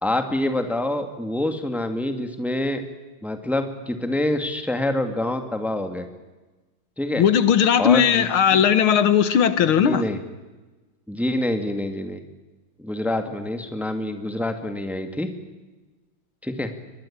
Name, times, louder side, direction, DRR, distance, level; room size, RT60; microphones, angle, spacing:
voice 1, 0.0-2.8 3.2-6.0 7.0-7.2 7.8-8.2 9.8-10.2 11.1-12.2 12.8-15.3 16.4-16.7, left 1 dB, ahead, 7 dB, 1.9 m, -26 dB
voice 2, 7.2-10.0, left 8 dB, 75° left, 13 dB, 2.0 m, -18 dB
25.0 x 21.5 x 8.8 m, 1.2 s
omnidirectional pair, 2.3 m